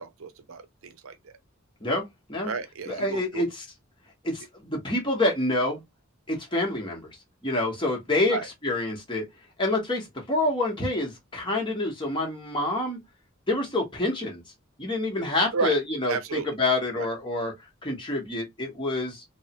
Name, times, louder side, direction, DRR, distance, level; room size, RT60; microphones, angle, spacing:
voice 1, 0.0-1.3 2.4-3.4 8.3-8.5 15.5-15.8 16.1-16.5 16.9-17.1, right 4 dB, 80° right, 0.6 m, -32 dB
voice 2, 2.9-3.5 4.2-4.4 4.7-5.8 6.3-7.0 7.4-8.4 8.6-9.2 9.6-13.0 13.5-14.4 14.8-17.5 17.8-19.2, left 2 dB, 25° left, 1.1 m, -27 dB
3.1 x 2.1 x 2.8 m
head